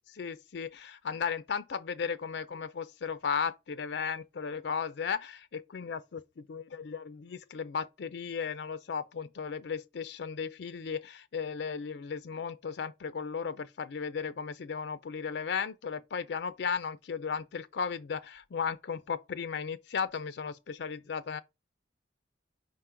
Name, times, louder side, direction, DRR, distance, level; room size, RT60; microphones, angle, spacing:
voice 1, 0.1-21.4, left 6 dB, 70° left, 0.4 m, -35 dB
5.0 x 3.7 x 5.6 m
head